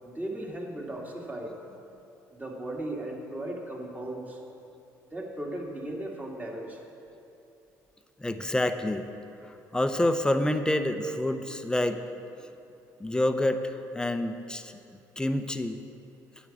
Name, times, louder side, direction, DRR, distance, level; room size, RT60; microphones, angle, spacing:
voice 1, 0.0-1.5 2.3-4.4 5.1-6.8, right 1 dB, 15° right, -1 dB, 2.1 m, -36 dB
voice 2, 8.2-9.1 9.7-12.0 13.0-13.6 13.9-14.7 15.2-15.8, left 1 dB, 10° left, 8 dB, 0.7 m, -27 dB
9.2 x 6.2 x 7.3 m, 2.7 s
hypercardioid pair, 60°, 9 cm